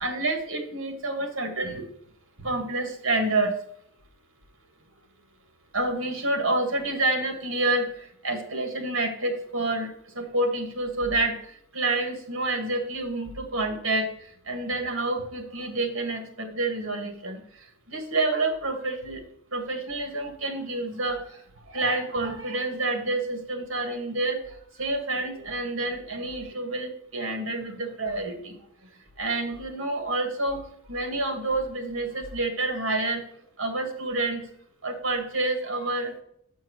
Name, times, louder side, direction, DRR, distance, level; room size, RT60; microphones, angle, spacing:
voice 1, 0.0-1.8 2.4-3.5 5.7-7.9 8.2-11.4 11.7-14.1 14.5-17.4 17.9-19.2 19.5-21.2 21.7-24.4 24.8-28.6 29.2-30.6 30.9-33.2 33.6-34.4 34.8-36.1, right 2 dB, 65° right, 4 dB, 1.9 m, -28 dB
7.5 x 4.6 x 6.3 m, 0.68 s
head